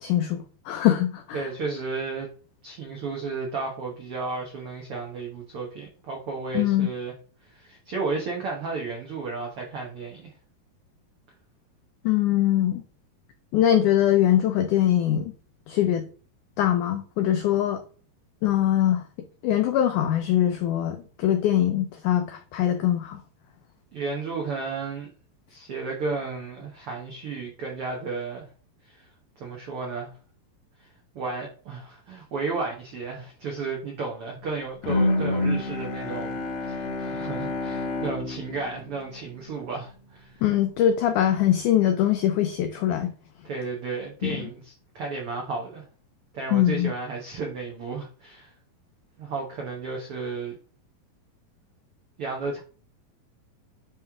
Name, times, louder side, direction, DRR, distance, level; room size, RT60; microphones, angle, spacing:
voice 1, 0.0-1.5 6.5-6.9 12.0-12.8 13.5-15.3 15.7-16.1 16.6-17.8 18.4-19.0 19.4-23.2 40.4-43.1 44.2-44.5 46.5-46.9, left 11 dB, 85° left, 1.7 m, -22 dB
voice 2, 1.3-2.3 2.6-7.1 7.5-10.3 23.9-25.1 25.5-28.5 28.8-29.1 29.4-30.1 30.8-30.9 31.1-40.4 43.4-45.8 46.3-48.5 49.2-50.6 52.2-52.6, right 4 dB, 80° right, 1.2 m, -33 dB
Bowed string instrument, 34.8-39.9, left 2 dB, 70° left, 1.8 m, -29 dB
9.3 x 3.2 x 3.5 m
omnidirectional pair, 4.3 m